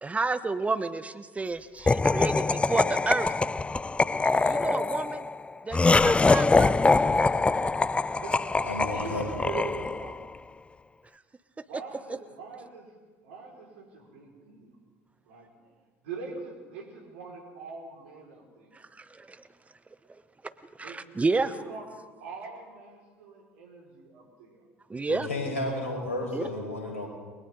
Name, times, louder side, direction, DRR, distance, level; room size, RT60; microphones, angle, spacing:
voice 1, 0.0-3.3 4.4-5.3 5.6-6.8 18.7-19.4 20.8-21.5 24.9-25.3 26.3-26.4, right 3 dB, 20° right, 12 dB, 1.0 m, -30 dB
Laughter, 1.9-10.2, left 3 dB, 15° left, 0.5 m, -24 dB
voice 2, 8.1-8.5 8.9-10.2 11.6-12.9 13.2-14.8 15.3-15.7 16.0-18.8 20.8-21.9 22.2-24.7, right 5 dB, 70° right, 0 dB, 5.6 m, -42 dB
voice 3, 8.6-9.2 25.1-27.1, left 2 dB, 85° left, 0 dB, 5.5 m, -32 dB
30.0 x 22.0 x 4.1 m, 1.4 s
figure-of-eight pair, 65°, 7 cm